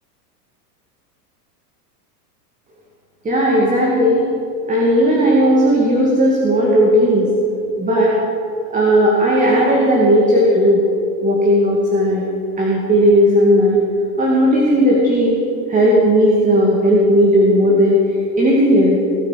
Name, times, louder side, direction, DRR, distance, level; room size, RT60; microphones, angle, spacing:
voice 1, 3.2-4.3 4.7-7.3 7.8-8.2 8.7-10.8 11.2-12.2 12.6-13.8 14.2-15.4 15.7-19.0, equal, 15° right, -3 dB, 2.5 m, -15 dB
20.5 x 9.1 x 7.6 m, 2.8 s
hypercardioid pair, 135°, 48 cm